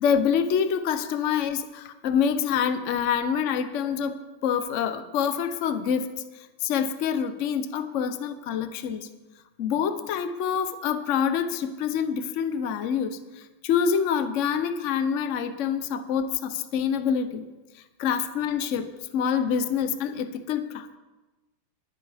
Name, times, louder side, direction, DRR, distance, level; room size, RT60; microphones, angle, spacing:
voice 1, 0.0-9.1 9.6-17.4 17.7-21.0, left 7 dB, 90° left, 10 dB, 0.6 m, -26 dB
21.0 x 8.9 x 3.5 m, 1.1 s
omnidirectional pair, 2.3 m